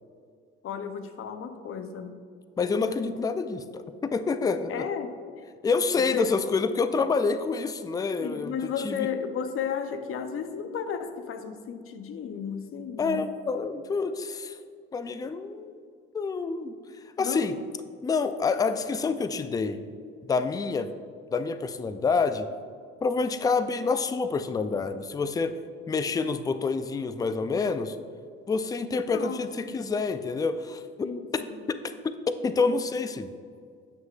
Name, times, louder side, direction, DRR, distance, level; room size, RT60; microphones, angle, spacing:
voice 1, 0.6-2.2 4.7-5.1 6.0-6.4 8.2-13.3 17.2-17.6 29.1-29.8 31.0-31.5, left 7 dB, 45° left, 9 dB, 0.7 m, -34 dB
voice 2, 2.6-4.9 5.6-9.1 13.0-14.6 14.9-15.7 16.1-16.7 17.2-17.6 18.0-19.8 20.3-20.9 21.3-22.5 23.0-25.5 25.9-28.0 28.5-31.4 31.7-31.8 32.0-33.3, left 4 dB, 10° left, 11 dB, 0.4 m, -27 dB
9.3 x 6.2 x 2.4 m, 2.2 s
hypercardioid pair, 60°, 31 cm